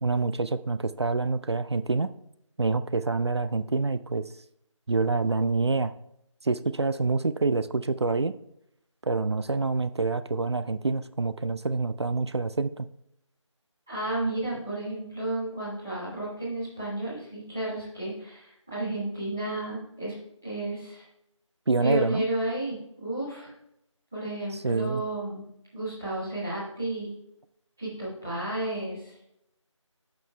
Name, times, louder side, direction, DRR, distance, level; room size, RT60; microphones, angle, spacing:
voice 1, 0.0-2.1 2.6-4.2 4.9-5.9 6.4-8.3 9.0-12.9 21.7-22.3 24.5-25.0, right 3 dB, 55° right, 13 dB, 0.4 m, -26 dB
voice 2, 13.9-20.1 20.4-21.1 21.8-23.5 24.1-25.4 25.7-27.1 27.8-29.1, right 1 dB, 5° right, -13 dB, 0.6 m, -32 dB
15.5 x 5.2 x 2.2 m, 0.80 s
figure-of-eight pair, 165°, 17 cm